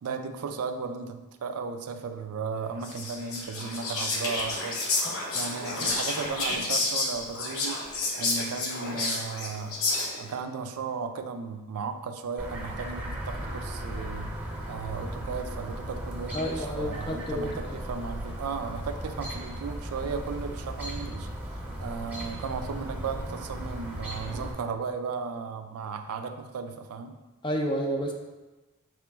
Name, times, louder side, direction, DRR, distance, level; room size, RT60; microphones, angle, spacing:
voice 1, 0.0-4.8 5.3-7.8 8.2-9.8 10.2-14.3 14.7-21.3 21.8-27.1, right 5 dB, 90° right, 7 dB, 0.4 m, -35 dB
Whispering, 2.8-10.3, left 2 dB, 70° left, 0.7 m, -30 dB
Chirp tweet, 12.4-24.5, right 1 dB, 10° right, 0.8 m, -36 dB
voice 2, 16.3-17.8 27.4-28.1, equal, 20° left, 2 dB, 0.4 m, -30 dB
4.8 x 3.0 x 3.4 m, 1.2 s
head